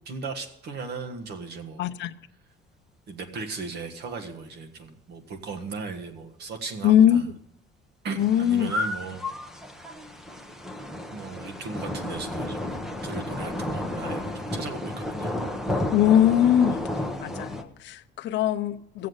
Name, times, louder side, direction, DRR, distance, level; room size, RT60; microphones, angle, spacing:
voice 1, 0.0-1.9 3.1-7.3 8.0-9.3 11.1-15.4, right 4 dB, 55° right, 1.6 m, -37 dB
voice 2, 1.8-2.1 6.8-7.2 8.2-8.7 15.9-19.1, left 10 dB, 60° left, 0.6 m, -21 dB
sound 1, 8.2-17.6, left 1 dB, ahead, 0.7 m, -32 dB
15.5 x 7.6 x 8.0 m
cardioid pair, 175°, 20 cm